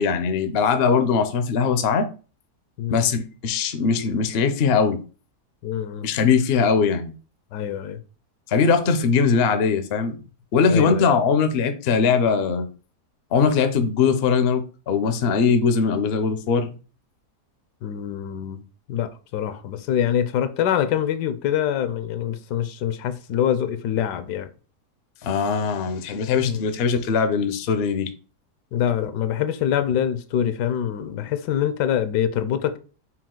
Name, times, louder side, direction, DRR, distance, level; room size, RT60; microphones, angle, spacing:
voice 1, 0.0-2.1 2.9-5.0 6.0-7.1 8.5-10.2 10.5-12.7 13.3-16.7 25.2-28.1, left 5 dB, 65° left, 0.6 m, -21 dB
voice 2, 5.6-6.1 7.5-8.0 10.7-11.0 17.8-18.6 18.9-24.5 26.4-26.7 28.7-32.8, left 10 dB, 80° left, 1.2 m, -25 dB
5.9 x 2.4 x 3.7 m
omnidirectional pair, 1.8 m